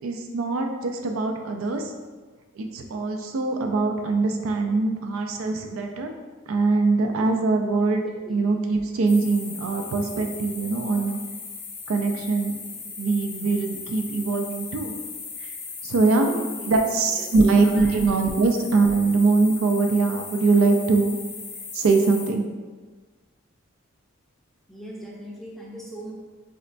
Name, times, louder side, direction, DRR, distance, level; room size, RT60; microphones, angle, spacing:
voice 1, 0.0-1.9 2.6-6.1 6.5-8.0 8.3-11.2 11.9-12.6 13.0-15.0 15.4-15.5 15.8-16.4 16.7-21.1 21.7-22.4, right 3 dB, 85° right, 4 dB, 0.4 m, -22 dB
sound 1, 9.1-22.3, left 5 dB, 65° left, 0.6 m, -38 dB
voice 2, 17.6-18.0 24.7-26.1, equal, ahead, -4 dB, 0.4 m, -40 dB
4.1 x 2.1 x 2.5 m, 1.4 s
head